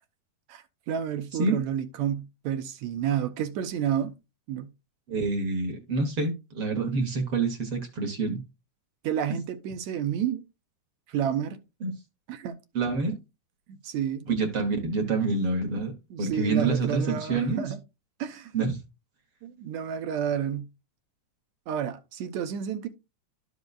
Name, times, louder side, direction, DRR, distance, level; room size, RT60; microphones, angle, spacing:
voice 1, 0.5-4.1 4.5-4.7 9.0-10.4 11.1-11.6 12.3-12.6 13.7-14.3 16.1-17.8 18.2-18.5 19.4-20.7 21.7-22.9, right 9 dB, 75° right, 1.9 m, -30 dB
voice 2, 5.1-8.4 11.8-11.9 12.7-13.2 14.3-15.9 16.2-17.7 18.5-18.8, right 3 dB, 55° right, 1.7 m, -27 dB
12.5 x 5.2 x 2.4 m
omnidirectional pair, 3.5 m